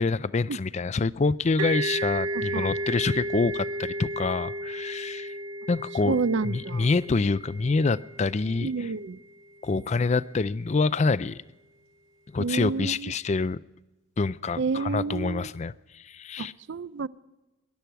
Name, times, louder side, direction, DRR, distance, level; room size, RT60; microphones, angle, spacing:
voice 1, 0.0-5.3 5.7-8.9 9.6-11.4 12.3-13.6 14.2-16.5, left 4 dB, 30° left, 0.4 m, -26 dB
sound 1, 1.6-9.1, right 1 dB, 75° right, 2.4 m, -33 dB
voice 2, 2.3-2.7 6.0-6.9 8.6-9.2 12.4-13.1 14.6-15.5 16.4-17.1, right 4 dB, 55° right, 0.5 m, -29 dB
20.5 x 11.5 x 4.6 m
head